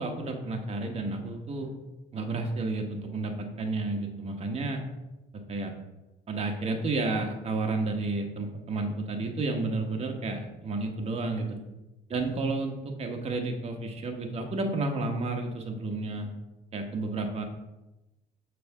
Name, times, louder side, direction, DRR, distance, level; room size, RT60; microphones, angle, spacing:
voice 1, 0.0-1.7 2.1-4.8 5.5-5.7 6.3-11.6 12.1-16.3 16.7-17.4, right 3 dB, 35° right, 3 dB, 1.2 m, -31 dB
7.1 x 3.5 x 6.1 m, 1.0 s
cardioid pair, 110°, 17 cm